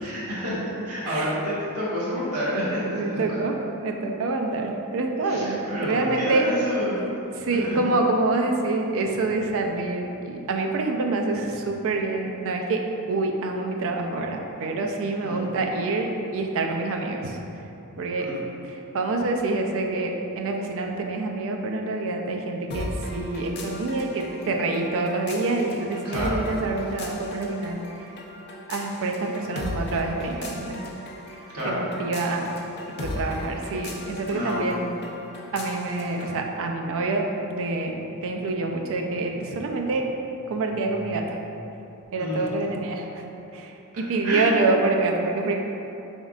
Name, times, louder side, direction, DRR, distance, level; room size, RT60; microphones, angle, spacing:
voice 1, 0.0-0.6 0.8-3.2 5.2-7.0 7.6-7.8 15.2-15.4 18.2-18.4 26.0-26.3 31.5-31.8 34.3-34.6 42.2-42.4 44.2-44.5, equal, 85° right, -9 dB, 1.4 m, -29 dB
voice 2, 1.0-1.4 2.8-6.5 7.3-12.8 13.1-17.4 18.0-18.3 18.6-27.8 28.7-30.8 31.3-32.6 32.9-35.0 35.5-40.1 40.5-41.3 42.1-43.2 43.5-45.6, right 3 dB, 65° right, 2 dB, 0.4 m, -26 dB
sound 1, 22.7-36.4, left 1 dB, 50° left, 0.5 m, -37 dB
5.2 x 3.5 x 2.4 m, 2.9 s
head